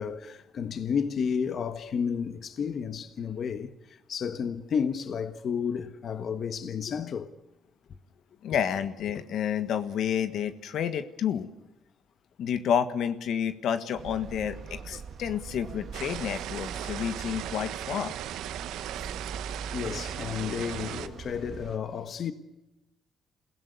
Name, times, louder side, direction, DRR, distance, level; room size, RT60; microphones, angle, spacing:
voice 1, 0.0-7.3 19.7-22.3, left 7 dB, 55° left, 1.4 m, -32 dB
voice 2, 8.4-11.5 12.4-18.1, left 8 dB, 75° left, 1.5 m, -30 dB
sound 1, 14.0-21.8, right 5 dB, 60° right, 1.7 m, -42 dB
sound 2, 15.9-21.1, right 12 dB, 90° right, 1.0 m, -37 dB
27.5 x 17.0 x 9.6 m
cardioid pair, 90°, 0 cm